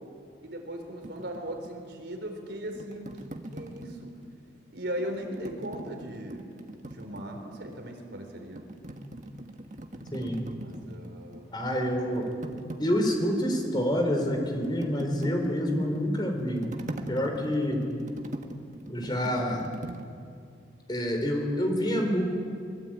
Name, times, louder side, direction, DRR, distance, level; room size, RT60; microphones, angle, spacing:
voice 1, 0.4-4.1 4.7-6.5 6.9-8.8 10.6-11.5, right 1 dB, 75° right, 4 dB, 4.0 m, -38 dB
sound 1, 1.0-4.5 5.1-7.9 8.3-11.5 11.8-20.0, right 1 dB, 45° right, 1.5 m, -42 dB
voice 2, 10.1-10.4 11.5-12.3 12.8-16.7 17.1-17.9 18.9-19.7 20.9-22.2, equal, 25° left, 3 dB, 4.1 m, -27 dB
25.0 x 22.0 x 9.0 m, 2.3 s
head